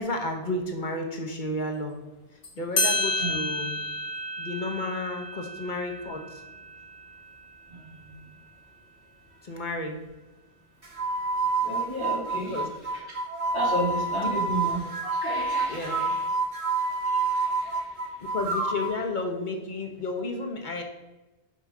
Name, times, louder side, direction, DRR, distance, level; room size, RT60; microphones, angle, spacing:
voice 1, 0.0-1.9 2.6-3.8 4.4-6.4 9.4-10.0 12.3-12.7 14.1-14.4 15.7-16.0 18.2-20.8, left 2 dB, 45° left, 3 dB, 1.1 m, -32 dB
sound 1, 2.4-2.5 2.8-7.9, left 1 dB, 85° left, 2.0 m, -31 dB
voice 2, 7.7-8.1 11.6-12.6 13.1-13.2 13.5-16.2 17.0-17.8, right 1 dB, 75° right, -7 dB, 3.0 m, -33 dB
sound 2, 10.8-19.0, right 3 dB, 30° right, 1.5 m, -28 dB
5.9 x 5.1 x 4.6 m, 1.1 s
omnidirectional pair, 1.1 m